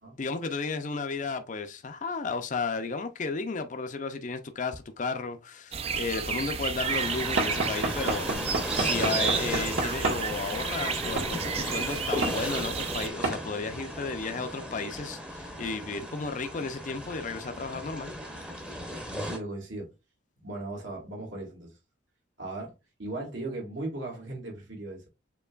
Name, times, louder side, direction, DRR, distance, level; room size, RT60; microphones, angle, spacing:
voice 1, 0.2-18.1, left 4 dB, 40° left, 0.5 m, -33 dB
sound 1, 5.7-13.1, right 6 dB, 30° right, 0.4 m, -32 dB
sound 2, 6.8-19.4, equal, 5° right, 0.8 m, -36 dB
Knock / Wood, 7.4-10.3 11.2-11.3 12.2-12.4 13.2-13.4, right 2 dB, 90° right, 1.4 m, -30 dB
voice 2, 19.1-19.9 20.4-21.7 22.4-22.7 23.0-25.1, right 2 dB, 70° right, 1.8 m, -37 dB
6.8 x 2.9 x 2.4 m
head